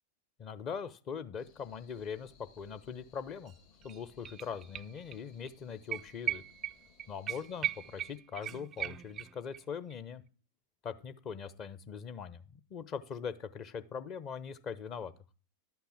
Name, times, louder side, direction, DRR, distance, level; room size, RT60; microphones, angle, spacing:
voice 1, 0.4-3.5 3.8-6.4 7.1-10.2 10.8-15.1, left 6 dB, 35° left, 12 dB, 0.9 m, -41 dB
sound 1, 1.4-8.2, left 7 dB, 55° left, 2.6 m, -63 dB
sound 2, 3.5-3.6 3.8-5.2 5.5-5.6 5.9-9.6 9.9-10.0, right 11 dB, 25° right, 0.4 m, -38 dB
11.5 x 5.9 x 7.3 m, 0.37 s
figure-of-eight pair, 90°, 0 cm